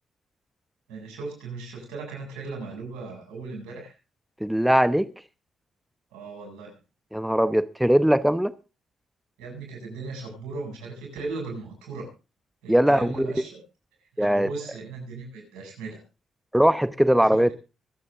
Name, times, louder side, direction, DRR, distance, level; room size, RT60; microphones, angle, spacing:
voice 1, 0.9-3.9 6.1-6.8 9.4-12.1 12.6-13.6 14.2-16.0, right 3 dB, 80° right, 7.9 m, -37 dB
voice 2, 4.4-5.1 7.1-8.5 12.7-13.3 14.2-14.5 16.5-17.5, equal, 5° right, 1.0 m, -20 dB
24.0 x 8.7 x 3.8 m
supercardioid pair, 50°, 0 cm